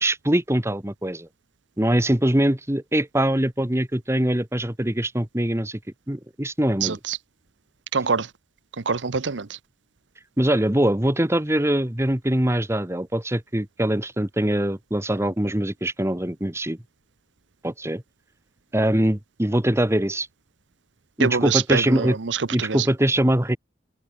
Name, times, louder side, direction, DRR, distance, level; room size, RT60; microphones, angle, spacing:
voice 1, 0.0-1.3 1.8-5.8 6.1-7.0 10.4-16.8 17.6-18.0 18.7-20.3 21.2-22.2 22.5-23.6, right 1 dB, 15° right, 1.5 m, -23 dB
voice 2, 6.8-7.2 7.9-8.3 8.8-9.6 21.2-22.9, right 5 dB, 90° right, 0.9 m, -25 dB
head